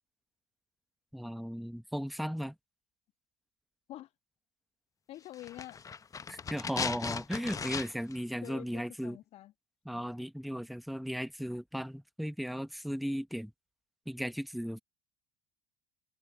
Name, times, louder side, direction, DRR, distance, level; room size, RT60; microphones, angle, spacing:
voice 1, 1.1-2.6 6.3-9.2 9.9-13.5 14.1-14.8, equal, ahead, 1.6 m, -36 dB
voice 2, 5.1-5.8 8.4-9.5, left 14 dB, 45° left, 1.6 m, -47 dB
sound 1, 5.3-8.2 8.4-8.5, left 6 dB, 25° left, 1.2 m, -38 dB
figure-of-eight pair, 70°, 14 cm